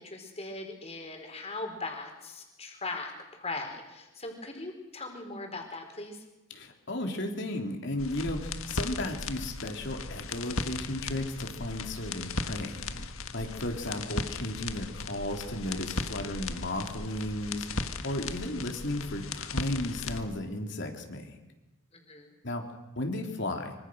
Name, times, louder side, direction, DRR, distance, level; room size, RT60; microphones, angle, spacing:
voice 1, 0.0-6.2 21.9-22.3, left 2 dB, 30° left, 3 dB, 4.8 m, -39 dB
voice 2, 6.5-21.4 22.4-22.6 23.0-23.8, left 1 dB, 55° left, 3 dB, 3.5 m, -34 dB
sound 1, 8.0-20.2, left 3 dB, 75° left, 1.6 m, -37 dB
25.5 x 25.0 x 6.4 m, 1.0 s
head